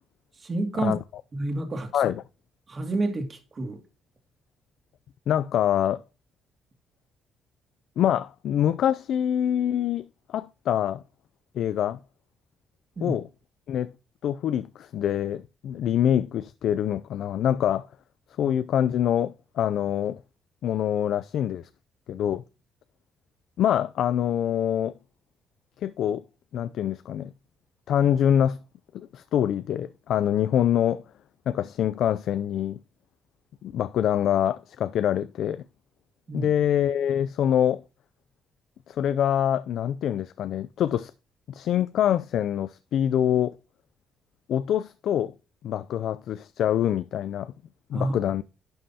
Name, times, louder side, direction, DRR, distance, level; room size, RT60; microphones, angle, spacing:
voice 1, 0.4-1.0 1.3-2.1 2.7-3.8 13.0-13.2 18.4-18.5 36.3-36.5 47.9-48.1, right 2 dB, 40° right, 2.3 m, -29 dB
voice 2, 5.3-6.0 8.0-11.0 11.6-12.0 13.0-13.3 13.7-13.9 14.2-17.9 18.4-20.2 20.6-21.7 22.1-22.4 23.6-24.9 25.8-26.2 26.5-27.3 27.9-28.6 28.9-31.0 31.5-32.8 33.6-35.6 36.3-37.8 38.9-41.1 41.5-43.5 44.5-45.3 45.6-47.5 47.9-48.4, left 10 dB, 75° left, 0.4 m, -25 dB
11.5 x 5.4 x 2.8 m
cardioid pair, 90°, 0 cm